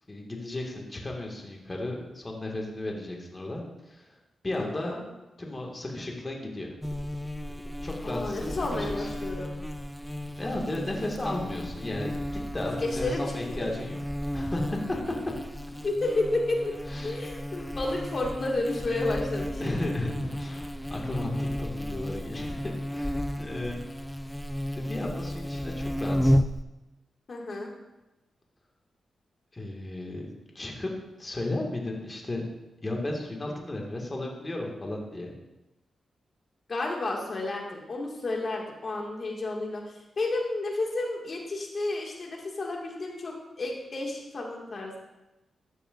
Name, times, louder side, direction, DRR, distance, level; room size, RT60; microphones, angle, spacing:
voice 1, 0.1-3.6 3.9-4.1 4.4-5.0 5.4-6.7 7.8-9.1 10.4-14.0 14.3-15.3 16.9-17.2 17.5-17.7 19.6-23.8 24.7-26.4 29.5-30.3 30.6-30.9 31.2-32.4 32.8-35.3, left 1 dB, 30° left, 0 dB, 1.9 m, -34 dB
voice 2, 4.6-5.0 8.0-9.5 12.8-13.7 15.8-16.7 17.0-19.7 27.3-27.7 36.7-45.0, left 2 dB, 55° left, -1 dB, 2.1 m, -31 dB
Buzz, 6.8-26.6, equal, 5° left, 0.4 m, -33 dB
13.0 x 6.8 x 2.6 m, 0.99 s
cardioid pair, 60°, 0 cm